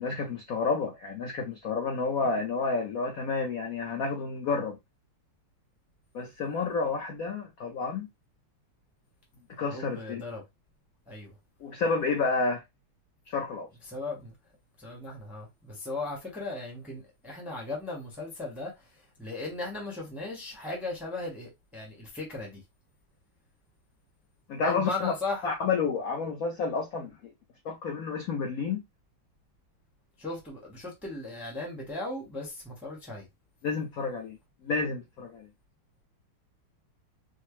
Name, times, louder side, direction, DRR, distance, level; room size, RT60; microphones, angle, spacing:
voice 1, 0.0-4.8 6.1-8.1 9.6-10.2 11.6-12.6 13.3-13.7 24.5-25.1 25.4-27.3 27.6-28.8 33.6-34.4 34.6-35.5, left 4 dB, 80° left, 0.7 m, -30 dB
voice 2, 9.7-10.4 11.1-11.3 13.9-14.3 14.8-18.7 19.2-22.6 24.6-25.5 30.2-33.3, left 2 dB, ahead, 0.5 m, -37 dB
4.5 x 2.0 x 3.0 m
omnidirectional pair, 2.4 m